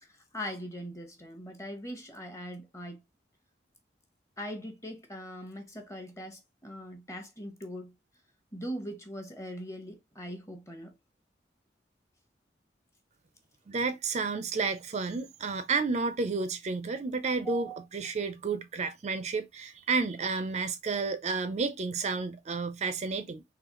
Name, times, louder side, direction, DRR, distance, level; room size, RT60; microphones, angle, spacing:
voice 1, 0.0-3.0 4.4-7.9 8.5-11.0 17.4-17.8, equal, 15° left, 0.9 m, -41 dB
voice 2, 13.7-23.4, right 4 dB, 40° right, 0.4 m, -31 dB
3.9 x 3.1 x 3.0 m
head